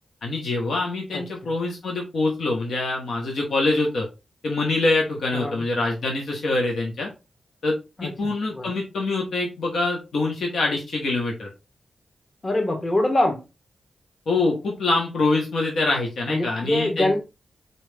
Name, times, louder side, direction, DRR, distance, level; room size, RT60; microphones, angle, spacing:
voice 1, 0.2-4.1 4.4-7.1 7.6-7.7 8.0-11.5 14.3-17.2, left 2 dB, 80° left, 1.2 m, -24 dB
voice 2, 1.1-1.5 5.3-5.6 8.0-8.7 12.4-13.4 16.3-17.2, left 1 dB, 30° left, 1.2 m, -24 dB
4.1 x 3.1 x 3.4 m
cardioid pair, 70°, 0 cm